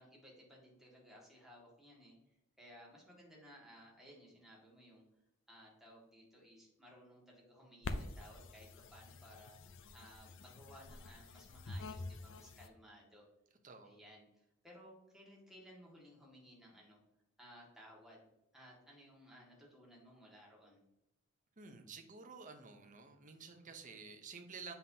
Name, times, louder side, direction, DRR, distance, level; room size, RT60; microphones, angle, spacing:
voice 1, 0.0-5.0 5.5-9.6 9.9-13.3 13.8-17.0 17.4-18.3 18.5-20.8, equal, ahead, -4 dB, 1.9 m, -59 dB
sound 1, 7.8-12.7, left 2 dB, 60° left, 0.5 m, -47 dB
voice 2, 13.6-14.0 21.6-24.7, right 4 dB, 35° right, 6 dB, 0.8 m, -51 dB
7.4 x 5.7 x 2.8 m, 0.84 s
head